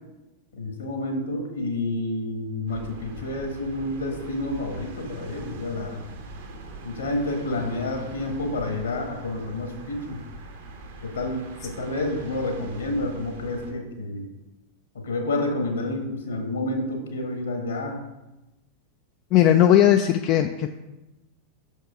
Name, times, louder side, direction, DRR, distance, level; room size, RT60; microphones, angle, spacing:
voice 1, 0.5-6.0 6.8-10.2 11.0-14.3 14.9-18.0, left 2 dB, 70° left, 3 dB, 1.6 m, -29 dB
sound 1, 2.7-13.7, right 2 dB, 60° right, 1.2 m, -42 dB
voice 2, 19.3-20.7, left 11 dB, 40° left, 7 dB, 0.3 m, -17 dB
6.5 x 5.4 x 5.1 m, 1.0 s
figure-of-eight pair, 90°, 0 cm